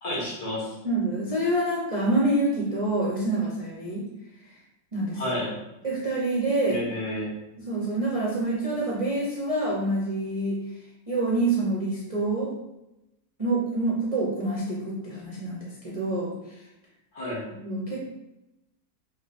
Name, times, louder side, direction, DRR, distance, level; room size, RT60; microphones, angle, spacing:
voice 1, 0.0-0.7 5.1-5.6 6.7-7.3 17.1-17.5, left 1 dB, 75° left, -5 dB, 2.1 m, -31 dB
voice 2, 0.8-4.0 4.5-4.6 4.9-5.2 5.8-6.8 7.7-10.6 11.1-12.5 13.4-16.6 17.6-18.0, right 2 dB, 35° right, -6 dB, 0.5 m, -27 dB
5.5 x 3.1 x 2.5 m, 0.92 s
omnidirectional pair, 1.7 m